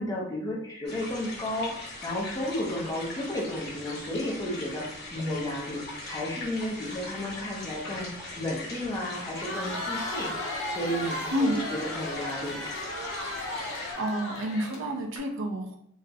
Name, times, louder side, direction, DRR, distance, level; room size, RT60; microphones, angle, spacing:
voice 1, 0.0-1.8 2.0-12.7, left 1 dB, 15° left, -3 dB, 0.5 m, -33 dB
sound 1, 0.9-13.9, left 2 dB, 50° left, 0.8 m, -41 dB
Crowd, 9.2-15.2, left 1 dB, 80° left, 0.5 m, -35 dB
voice 2, 13.5-15.8, equal, 70° right, 1 dB, 0.4 m, -30 dB
2.3 x 2.0 x 2.6 m, 0.68 s
head